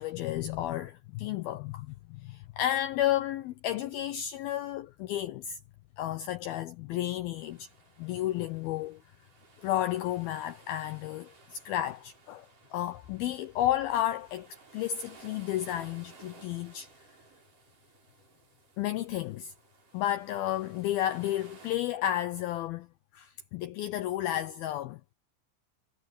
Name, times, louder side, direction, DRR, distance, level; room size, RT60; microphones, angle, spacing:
voice 1, 0.0-5.6 6.0-7.7 8.0-9.0 9.6-14.5 14.7-16.9 18.8-19.5 19.9-22.9 23.1-25.0, left 12 dB, 85° left, 2.1 m, -32 dB
sound 1, 7.4-21.8, right 4 dB, 45° right, 8.2 m, -57 dB
omnidirectional pair, 5.4 m